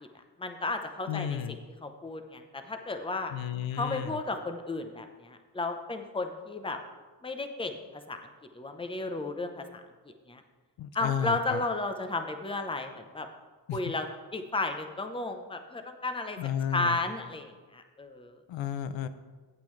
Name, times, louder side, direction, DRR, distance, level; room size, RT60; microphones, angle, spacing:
voice 1, 0.4-3.3 3.7-6.8 7.2-8.2 8.5-9.8 10.3-10.4 10.9-13.3 13.7-14.1 14.3-16.4 16.7-18.4, left 2 dB, 10° left, 6 dB, 0.8 m, -33 dB
voice 2, 1.1-1.5 3.3-4.2 10.8-11.6 13.7-13.8 16.4-17.0 18.5-19.1, left 9 dB, 80° left, 12 dB, 0.6 m, -32 dB
12.0 x 8.4 x 3.2 m, 1.4 s
cardioid pair, 110°, 45 cm